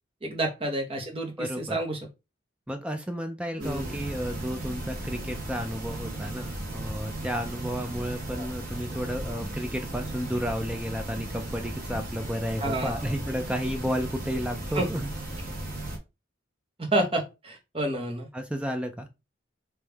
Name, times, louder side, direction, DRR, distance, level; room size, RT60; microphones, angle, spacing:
voice 1, 0.2-2.0 3.6-4.0 8.3-8.5 12.6-13.1 14.7-14.9 16.8-18.3, right 1 dB, 30° right, 1.0 m, -29 dB
voice 2, 1.4-1.8 2.7-15.1 18.3-19.1, equal, 5° right, 0.4 m, -32 dB
sound 1, 3.6-16.0, right 1 dB, 45° right, 1.4 m, -36 dB
3.5 x 3.2 x 3.4 m
head